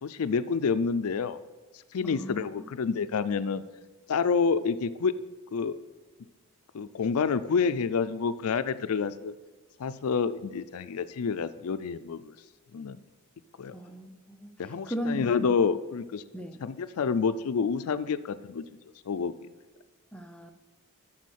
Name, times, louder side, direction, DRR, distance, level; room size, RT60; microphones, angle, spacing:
voice 1, 0.0-1.4 1.9-3.6 4.1-5.1 5.5-5.8 6.7-9.3 9.8-12.3 12.7-13.0 13.6-13.7 14.6-16.2 16.6-18.6 19.1-19.3, left 5 dB, 75° left, 13 dB, 0.4 m, -28 dB
voice 2, 2.0-2.6 13.7-15.5 16.3-16.6 20.1-20.5, equal, 5° left, 4 dB, 0.5 m, -37 dB
8.4 x 6.0 x 6.4 m, 1.2 s
head